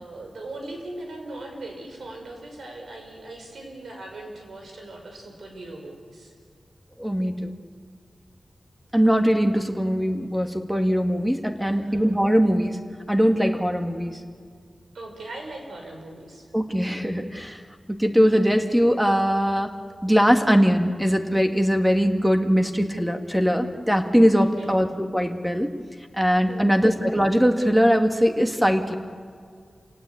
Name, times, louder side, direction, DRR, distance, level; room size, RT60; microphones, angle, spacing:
voice 1, 0.0-6.3 11.6-12.0 14.9-16.4 24.4-24.7 26.5-26.8, right 2 dB, 85° right, 2 dB, 6.0 m, -39 dB
voice 2, 7.0-7.6 8.9-12.8 13.1-14.2 16.5-17.6 17.9-19.7 20.0-25.8 26.1-29.0, equal, 5° right, 5 dB, 1.9 m, -21 dB
28.5 x 19.0 x 8.7 m, 2.1 s
wide cardioid pair, 90°, 0 cm